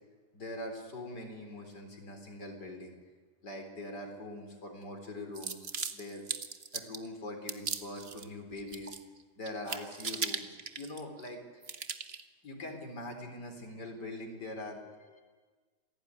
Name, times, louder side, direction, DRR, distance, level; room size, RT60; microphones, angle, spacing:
voice 1, 0.3-2.9 3.4-6.2 6.7-9.0 9.4-11.4 12.4-15.2, left 1 dB, 85° left, 4 dB, 4.6 m, -43 dB
sound 1, 5.3-7.1 7.5-8.3 8.6-9.2 9.5-11.3 11.6-12.2, right 5 dB, 40° right, 1.4 m, -38 dB
27.5 x 18.0 x 9.6 m, 1.4 s
omnidirectional pair, 1.8 m